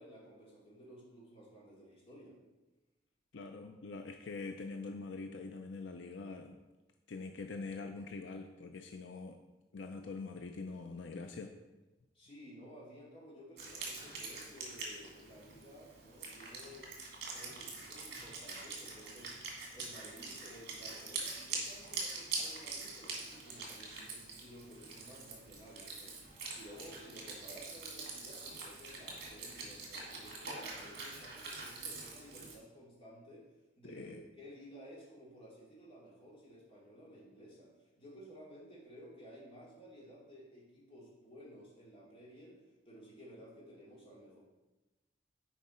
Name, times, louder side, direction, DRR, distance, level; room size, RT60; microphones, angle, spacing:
voice 1, 0.0-2.4 12.1-16.9 17.3-19.4 19.7-33.5 33.8-44.4, equal, 30° left, -5 dB, 2.5 m, -54 dB
voice 2, 3.3-6.6 7.1-9.4 9.7-11.5 33.8-34.2, left 3 dB, 75° left, 5 dB, 0.5 m, -44 dB
Wind instrument woodwind instrument, 13.6-32.5, right 3 dB, 60° right, 2.1 m, -44 dB
10.0 x 4.6 x 4.3 m, 1.1 s
head